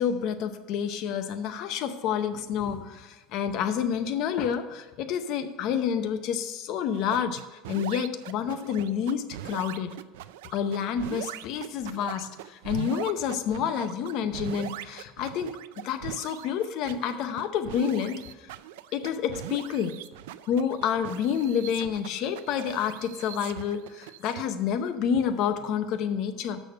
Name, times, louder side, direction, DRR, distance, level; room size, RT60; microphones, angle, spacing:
voice 1, 0.0-9.9 10.5-15.6 15.8-18.5 18.9-20.0 20.5-26.6, left 8 dB, 50° left, 8 dB, 0.7 m, -29 dB
sound 1, 6.9-24.4, right 12 dB, 90° right, 0.4 m, -41 dB
6.6 x 6.3 x 6.5 m, 1.2 s
cardioid pair, 155°, 0 cm